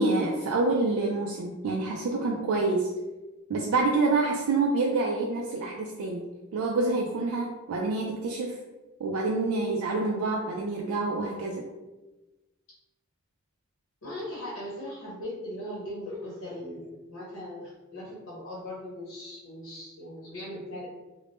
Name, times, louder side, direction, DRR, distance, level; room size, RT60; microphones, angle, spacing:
voice 1, 0.0-2.9 3.5-6.3 6.5-8.6 9.0-11.7, right 3 dB, 75° right, -1 dB, 0.3 m, -27 dB
voice 2, 14.0-20.9, left 1 dB, 60° left, -6 dB, 0.8 m, -39 dB
2.5 x 2.0 x 3.3 m, 1.1 s
head